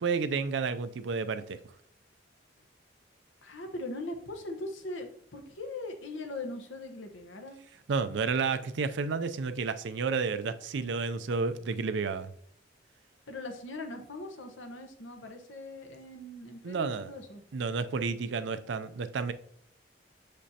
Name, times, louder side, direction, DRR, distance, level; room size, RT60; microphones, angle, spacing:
voice 1, 0.0-1.6 7.9-12.3 16.6-17.1 17.5-19.3, right 5 dB, 70° right, 0.4 m, -31 dB
voice 2, 3.4-7.6 13.3-17.4, left 2 dB, 85° left, 1.0 m, -40 dB
6.7 x 5.1 x 2.8 m
head